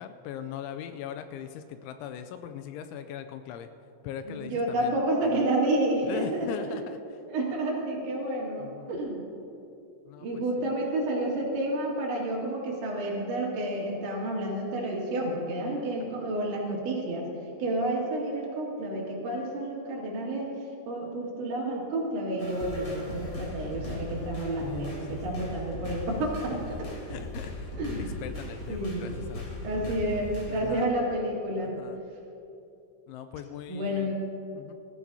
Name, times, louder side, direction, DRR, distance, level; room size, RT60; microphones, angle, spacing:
voice 1, 0.0-3.7 4.0-4.9 5.3-5.5 6.1-7.0 8.6-9.0 10.1-10.7 26.2-26.3 27.1-29.9 30.5-31.0 31.6-32.0 33.1-34.1 34.6-34.7, left 8 dB, 85° left, 8 dB, 2.8 m, -40 dB
voice 2, 4.3-6.8 7.3-9.2 10.2-17.3 17.6-20.6 20.9-26.9 27.8-28.1 28.7-29.1 29.6-31.8 33.7-34.2, right 1 dB, 70° right, -3 dB, 4.4 m, -30 dB
sound 1, 22.4-30.6, left 2 dB, 35° left, 4.1 m, -38 dB
19.5 x 14.5 x 2.8 m, 2.8 s
omnidirectional pair, 5.6 m